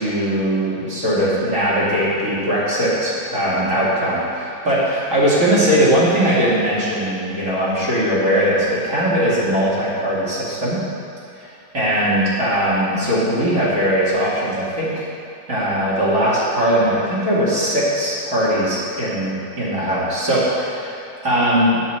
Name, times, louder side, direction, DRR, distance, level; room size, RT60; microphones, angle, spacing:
voice 1, 0.0-10.8 11.3-11.5 11.7-15.1 15.5-21.8, equal, 35° right, -9 dB, 3.0 m, -20 dB
8.5 x 5.6 x 8.0 m, 2.7 s
omnidirectional pair, 2.3 m